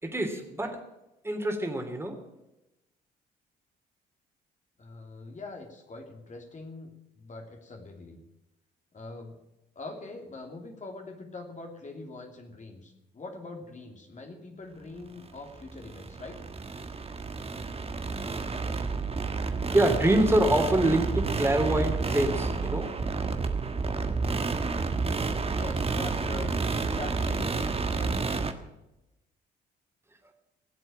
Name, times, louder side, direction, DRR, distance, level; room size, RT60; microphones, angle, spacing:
voice 1, 0.0-0.8 1.2-2.2 19.7-23.2 23.6-23.7, right 1 dB, 10° right, 3 dB, 3.2 m, -26 dB
voice 2, 4.8-8.2 8.9-9.4 9.7-16.4 25.4-28.2, left 3 dB, 35° left, 3 dB, 2.8 m, -43 dB
sound 1, 15.2-28.5, right 4 dB, 30° right, 1.5 m, -30 dB
17.0 x 7.9 x 8.7 m, 0.94 s
hypercardioid pair, 50°, 21 cm